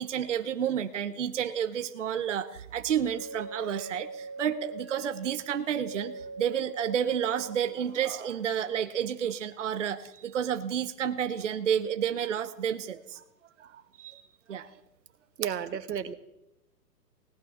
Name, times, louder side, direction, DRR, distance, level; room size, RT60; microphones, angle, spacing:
voice 1, 0.0-2.5 2.7-13.2 14.0-14.2 14.5-14.7, right 8 dB, 50° right, 10 dB, 0.7 m, -30 dB
sound 1, 2.8-7.8, right 3 dB, 15° left, 0.6 m, -42 dB
voice 2, 15.4-16.1, right 8 dB, 85° right, 11 dB, 1.4 m, -32 dB
17.5 x 9.6 x 6.4 m, 0.89 s
hypercardioid pair, 175°, 49 cm